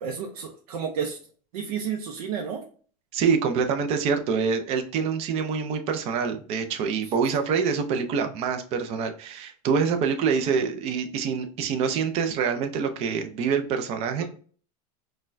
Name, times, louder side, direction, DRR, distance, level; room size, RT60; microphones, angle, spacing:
voice 1, 0.0-1.2 1.5-2.6, right 7 dB, 90° right, 2 dB, 0.5 m, -31 dB
voice 2, 3.1-14.2, right 6 dB, 35° right, 7 dB, 0.4 m, -26 dB
4.1 x 2.2 x 2.5 m, 0.42 s
supercardioid pair, 155°, 19 cm